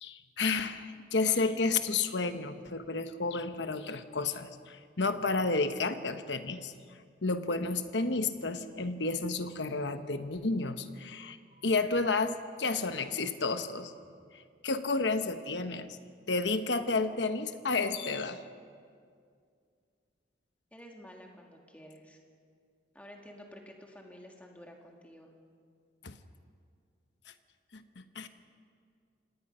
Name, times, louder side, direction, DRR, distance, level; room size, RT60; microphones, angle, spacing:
voice 1, 0.0-6.7 7.2-11.4 11.6-13.9 14.6-15.9 16.3-18.4 26.0-26.1 27.7-28.3, left 3 dB, 75° left, 9 dB, 1.1 m, -31 dB
voice 2, 20.7-22.2 22.9-25.3, equal, 10° left, 1 dB, 2.2 m, -51 dB
27.0 x 18.5 x 5.6 m, 2.2 s
head